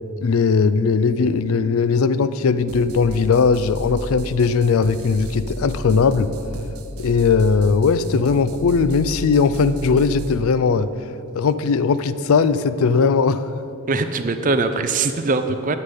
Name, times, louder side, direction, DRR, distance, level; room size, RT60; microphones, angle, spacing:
voice 1, 0.2-6.3 7.0-10.9 11.3-13.5, left 5 dB, 70° left, 14 dB, 0.4 m, -18 dB
sound 1, 2.7-10.4, equal, 80° right, 0.8 m, -34 dB
voice 2, 13.9-15.8, right 3 dB, 35° right, 9 dB, 0.5 m, -21 dB
9.7 x 5.6 x 8.3 m, 2.9 s
head